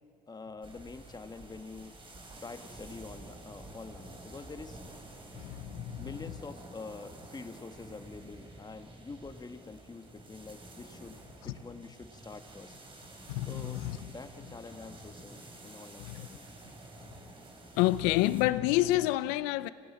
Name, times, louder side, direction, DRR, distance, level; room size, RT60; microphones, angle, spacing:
voice 1, 0.3-1.9 2.4-4.8 6.0-12.8 13.5-16.4, left 4 dB, 30° left, 1.8 m, -46 dB
sound 1, 0.6-18.4, right 1 dB, 35° right, 4.9 m, -50 dB
voice 2, 5.3-6.1 13.3-14.1 16.0-16.3 17.7-19.7, left 16 dB, 90° left, 0.6 m, -28 dB
26.5 x 18.0 x 8.7 m
supercardioid pair, 65°, 15 cm